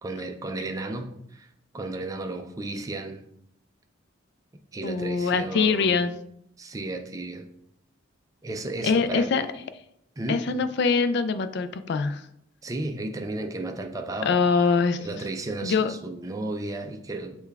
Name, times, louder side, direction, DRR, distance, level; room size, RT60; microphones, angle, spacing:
voice 1, 0.0-1.5 1.7-3.2 4.7-6.0 6.6-7.5 8.4-9.4 10.2-10.4 12.6-14.3 15.0-17.4, right 2 dB, 15° right, 5 dB, 0.4 m, -33 dB
voice 2, 4.8-6.2 8.8-9.5 10.3-12.2 14.2-15.1 15.6-15.9, left 5 dB, 55° left, 10 dB, 0.3 m, -23 dB
6.6 x 2.3 x 3.4 m, 0.75 s
head